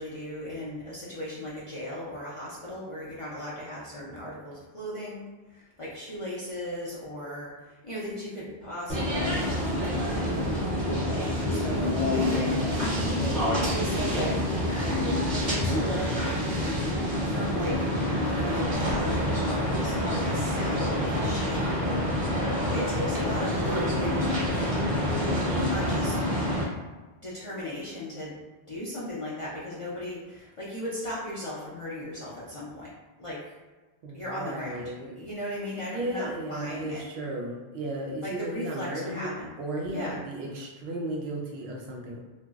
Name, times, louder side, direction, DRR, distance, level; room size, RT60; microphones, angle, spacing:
voice 1, 0.0-9.9 11.1-13.1 13.5-16.1 17.3-17.9 18.2-21.6 22.4-24.7 25.6-26.2 26.7-26.8 27.2-28.4 28.7-32.9 33.2-33.5 34.1-37.0 38.2-39.5 39.9-40.2, left 1 dB, 40° left, -7 dB, 0.5 m, -37 dB
sound 1, 8.9-26.6, left 1 dB, 45° right, 1.0 m, -27 dB
voice 2, 34.0-35.1 35.8-39.3 39.6-42.2, right 1 dB, 70° right, -1 dB, 0.8 m, -35 dB
2.9 x 2.5 x 2.3 m, 1.2 s
omnidirectional pair, 1.1 m